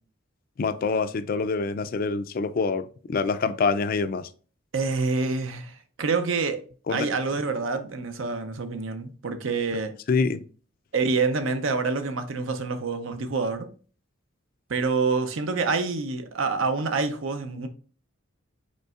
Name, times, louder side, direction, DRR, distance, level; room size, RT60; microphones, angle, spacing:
voice 1, 0.6-4.3 6.9-7.1 10.1-10.4, left 4 dB, 45° left, 0.3 m, -26 dB
voice 2, 4.7-6.6 6.9-9.9 10.9-13.7 14.7-17.7, right 4 dB, 75° right, 0.7 m, -27 dB
5.3 x 4.2 x 2.4 m
head